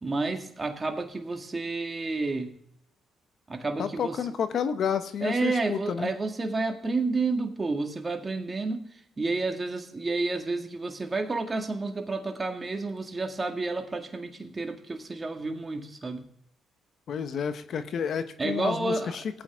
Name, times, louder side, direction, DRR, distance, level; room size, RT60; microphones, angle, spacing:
voice 1, 0.0-2.5 3.5-4.3 5.2-8.8 9.2-16.2 18.4-19.2, right 3 dB, 30° right, 4 dB, 2.0 m, -30 dB
voice 2, 3.8-6.1 17.1-19.4, left 7 dB, 65° left, 10 dB, 1.1 m, -30 dB
16.0 x 8.8 x 3.7 m, 0.70 s
supercardioid pair, 70°, 0 cm